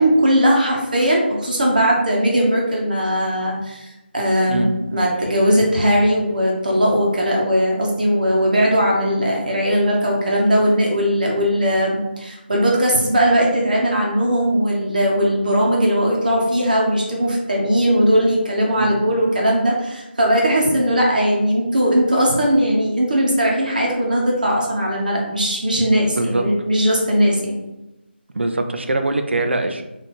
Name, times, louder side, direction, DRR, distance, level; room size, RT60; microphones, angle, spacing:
voice 1, 0.0-27.6, equal, 45° right, -2 dB, 1.0 m, -19 dB
voice 2, 26.1-26.4 28.3-29.8, right 2 dB, 75° right, 6 dB, 0.5 m, -22 dB
3.9 x 2.7 x 3.6 m, 0.97 s
figure-of-eight pair, 180°, 6 cm